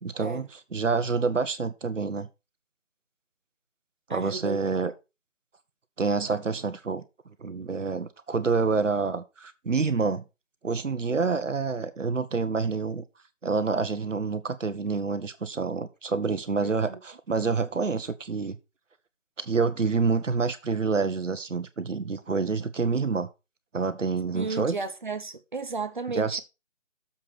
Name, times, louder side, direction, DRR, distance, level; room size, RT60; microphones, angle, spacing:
voice 1, 0.0-0.4 0.7-2.3 4.1-4.9 6.0-7.0 7.4-10.2 10.6-13.0 13.4-18.6 19.4-23.3 23.7-24.7 26.1-26.4, right 4 dB, 80° right, 1.4 m, -27 dB
voice 2, 4.1-4.6 16.6-17.0 24.3-26.4, right 4 dB, 40° right, 0.9 m, -34 dB
7.4 x 5.0 x 6.0 m
figure-of-eight pair, 170°, 37 cm